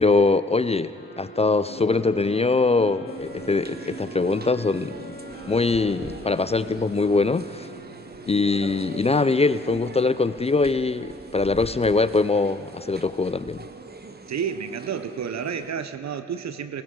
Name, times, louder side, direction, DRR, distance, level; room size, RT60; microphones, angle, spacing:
voice 1, 0.0-5.2 5.5-7.7 8.3-13.6, left 3 dB, 20° left, 14 dB, 0.4 m, -22 dB
sound 1, 0.9-8.6, left 2 dB, 40° left, 2.1 m, -43 dB
sound 2, 1.6-10.2, right 5 dB, 85° right, 1.2 m, -44 dB
sound 3, 3.1-15.7, right 4 dB, 35° right, 0.9 m, -43 dB
voice 2, 14.3-16.8, right 7 dB, 65° right, 11 dB, 0.8 m, -30 dB
18.5 x 17.0 x 3.8 m, 3.0 s
supercardioid pair, 45°, 30 cm